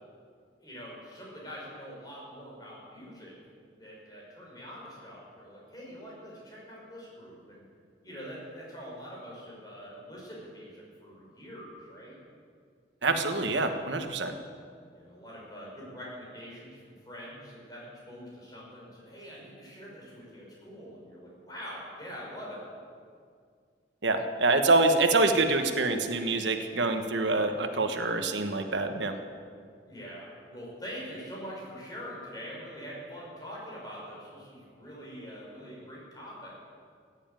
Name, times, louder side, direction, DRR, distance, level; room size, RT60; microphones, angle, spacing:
voice 1, 0.6-3.3 3.8-7.7 8.0-12.2 14.9-22.6 29.8-36.5, equal, 20° left, -4 dB, 5.3 m, -44 dB
voice 2, 13.0-14.3 24.0-29.1, right 3 dB, 90° right, 6 dB, 1.2 m, -26 dB
15.5 x 9.8 x 9.0 m, 2.1 s
head